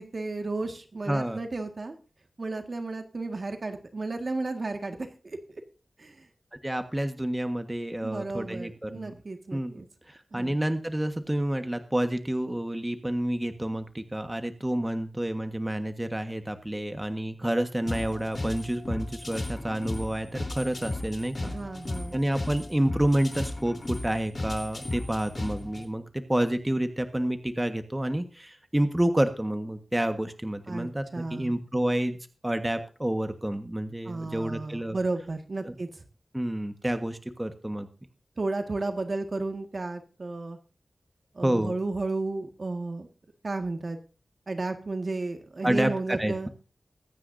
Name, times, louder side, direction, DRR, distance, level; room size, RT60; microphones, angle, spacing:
voice 1, 0.0-1.9 2.4-5.0 5.2-5.4 6.0-6.2 8.0-9.9 10.3-10.6 21.4-22.1 30.7-31.5 34.0-36.0 38.4-40.6 41.3-43.1 43.4-44.0 44.5-46.5, right 3 dB, 60° right, 6 dB, 1.8 m, -33 dB
voice 2, 1.1-1.4 6.6-9.1 9.5-21.5 22.1-35.0 35.6-35.7 36.3-37.9 41.4-41.8 45.6-46.5, right 1 dB, 15° right, 8 dB, 1.4 m, -29 dB
sound 1, 17.9-25.9, left 2 dB, 45° left, 3.6 m, -35 dB
22.5 x 9.6 x 2.7 m, 0.35 s
wide cardioid pair, 55°, 0 cm